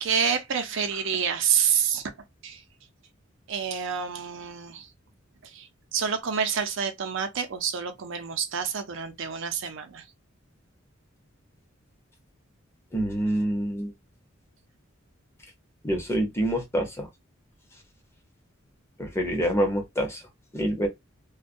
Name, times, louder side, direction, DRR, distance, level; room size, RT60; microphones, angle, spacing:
voice 1, 0.0-2.1 2.4-2.6 3.5-4.9 5.4-10.0, right 7 dB, 65° right, 0.6 m, -28 dB
voice 2, 12.9-13.9 15.8-17.1 19.0-20.2 20.5-20.9, equal, 15° left, 0.7 m, -26 dB
2.3 x 2.1 x 2.5 m
head